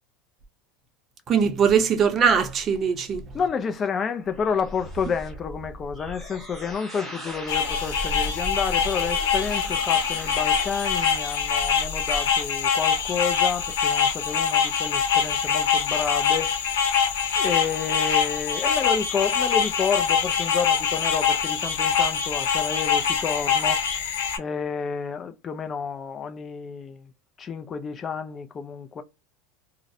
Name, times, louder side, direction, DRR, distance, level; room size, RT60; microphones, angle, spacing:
voice 1, 1.3-3.2, right 7 dB, 35° right, 0.6 m, -21 dB
voice 2, 3.3-27.1 27.4-29.0, left 6 dB, 30° left, 0.3 m, -30 dB
sound 1, 3.6-11.2, equal, ahead, 1.1 m, -40 dB
sound 2, 7.5-24.4, left 7 dB, 85° left, 0.7 m, -24 dB
2.4 x 2.0 x 2.6 m
supercardioid pair, 120°, 0 cm